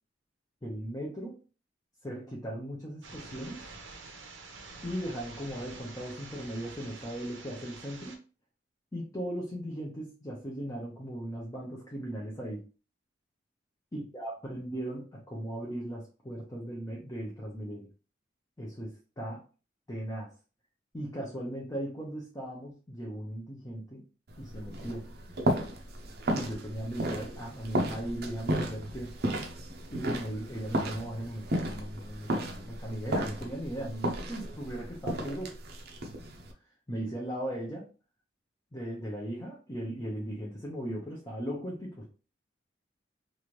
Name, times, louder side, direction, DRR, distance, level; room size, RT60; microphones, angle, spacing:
voice 1, 0.6-1.4 2.0-3.6 4.8-8.2 8.9-12.6 13.9-17.9 18.6-19.4 19.9-20.3 20.9-24.0 24.4-25.1 26.3-29.1 29.9-35.6 36.9-37.9 38.7-42.1, right 1 dB, 20° left, -4 dB, 0.7 m, -38 dB
sound 1, 3.0-8.2, right 3 dB, 90° right, 0.7 m, -47 dB
sound 2, 24.3-36.5, right 1 dB, 55° right, 0.6 m, -34 dB
3.2 x 2.6 x 3.1 m, 0.35 s
head